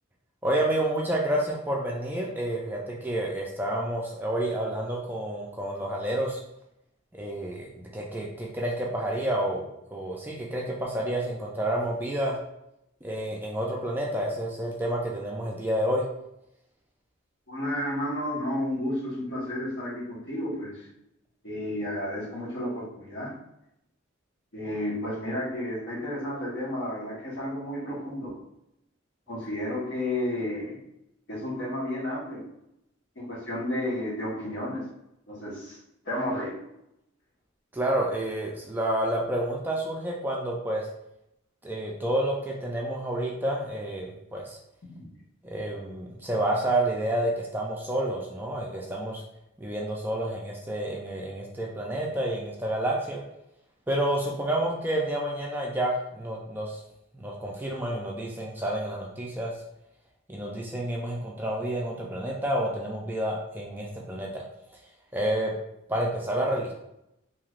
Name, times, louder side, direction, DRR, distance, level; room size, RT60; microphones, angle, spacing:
voice 1, 0.4-6.4 7.1-12.4 13.0-16.0 37.7-40.9 41.6-44.6 45.4-49.2 49.6-53.2 53.9-56.8 57.1-59.5 60.3-64.4 65.1-65.5 65.9-66.7, right 1 dB, 10° right, -2 dB, 0.3 m, -29 dB
voice 2, 17.5-20.9 21.4-23.3 24.5-28.4 29.3-30.8 31.3-32.4 33.1-34.8 35.3-35.8 36.0-36.5 45.0-45.1, left 1 dB, 60° left, -6 dB, 1.2 m, -32 dB
3.1 x 2.8 x 2.4 m, 0.82 s
head